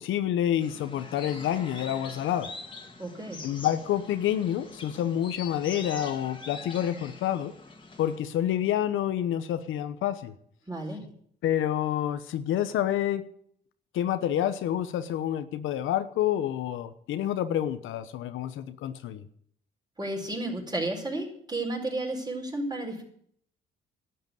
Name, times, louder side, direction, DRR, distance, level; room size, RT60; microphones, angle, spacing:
voice 1, 0.0-2.5 3.4-7.5 8.0-10.3 11.4-13.2 13.9-19.3, left 11 dB, 85° left, 11 dB, 1.0 m, -28 dB
sound 1, 0.6-8.2, left 3 dB, 25° left, 2.3 m, -44 dB
voice 2, 3.0-3.4 10.7-11.1 20.0-23.0, right 2 dB, 20° right, 0 dB, 4.7 m, -32 dB
12.0 x 8.0 x 9.4 m, 0.66 s
cardioid pair, 90°, 20 cm